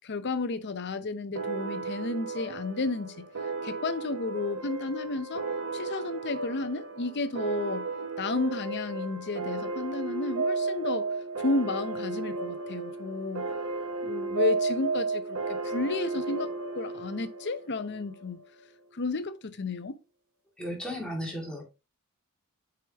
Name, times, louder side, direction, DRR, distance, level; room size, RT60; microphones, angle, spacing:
voice 1, 0.0-3.3 3.6-5.5 5.7-7.9 8.2-11.1 11.4-13.5 14.0-16.5 16.7-18.4 18.9-20.0, left 3 dB, 50° left, 0.7 m, -32 dB
sound 1, 1.4-18.5, right 3 dB, 70° right, 1.1 m, -34 dB
voice 2, 20.6-21.6, equal, 5° left, 2.2 m, -34 dB
6.7 x 5.0 x 2.9 m
head